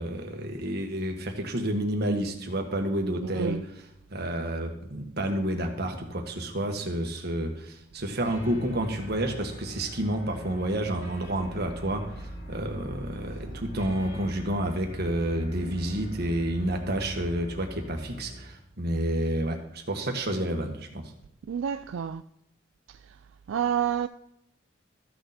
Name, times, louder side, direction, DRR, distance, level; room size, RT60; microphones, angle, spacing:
voice 1, 0.0-3.6 4.1-21.1, right 1 dB, 55° right, 1.6 m, -30 dB
voice 2, 3.2-3.6 21.5-22.2 22.9-23.2 23.5-24.1, right 8 dB, 80° right, 0.3 m, -29 dB
sound 1, 8.2-18.6, equal, 60° left, 2.6 m, -42 dB
14.0 x 6.6 x 4.2 m
head